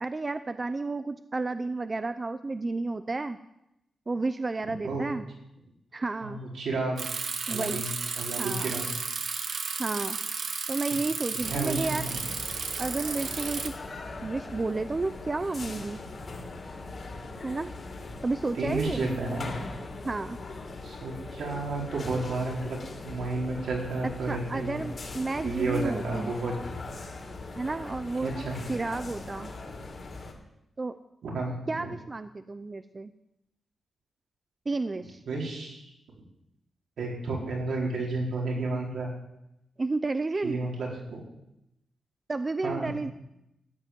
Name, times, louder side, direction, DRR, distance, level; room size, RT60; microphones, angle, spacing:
voice 1, 0.0-3.4 4.1-5.2 5.9-6.4 7.5-7.8 8.4-8.8 9.8-10.2 10.7-12.1 12.8-13.7 14.2-16.0 17.4-17.7 18.2-19.0 20.0-20.4 24.3-26.3 27.5-28.3 28.7-29.5 30.8-30.9 31.7-33.1 34.7-35.2 39.8-40.6 42.3-43.1, right 3 dB, 20° right, 11 dB, 0.5 m, -31 dB
voice 2, 6.2-7.0 7.5-7.9 8.2-8.8 11.5-12.2 18.1-18.2 18.5-19.5 20.8-24.8 25.4-26.6 28.2-28.6 31.2-31.9 35.3-35.8 37.0-39.1 40.4-41.2 42.6-42.9, right 3 dB, 75° right, -2 dB, 4.8 m, -32 dB
Bicycle, 7.0-13.7, right 5 dB, 55° right, 1.5 m, -33 dB
sound 1, 11.4-30.3, left 3 dB, 35° left, 2.6 m, -40 dB
14.5 x 8.4 x 9.4 m, 0.85 s
wide cardioid pair, 175°, 0 cm